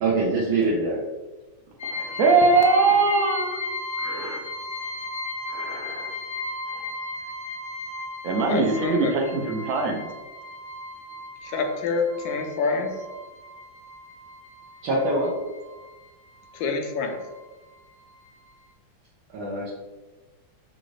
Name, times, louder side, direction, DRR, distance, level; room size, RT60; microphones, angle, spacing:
voice 1, 0.0-1.0 14.8-15.4 19.3-19.7, right 2 dB, 85° right, -5 dB, 1.7 m, -24 dB
sound 1, 1.8-16.1 16.4-17.4 17.7-17.8 18.3-18.4, left 2 dB, 30° left, 0.8 m, -35 dB
voice 2, 1.8-3.6 4.0-4.4 5.5-6.1 8.2-10.0, right 3 dB, 70° right, 2 dB, 0.8 m, -22 dB
voice 3, 8.5-9.1 11.4-13.1 16.5-17.2, left 4 dB, 75° left, 4 dB, 1.3 m, -27 dB
6.5 x 2.5 x 3.1 m, 1.2 s
omnidirectional pair, 2.1 m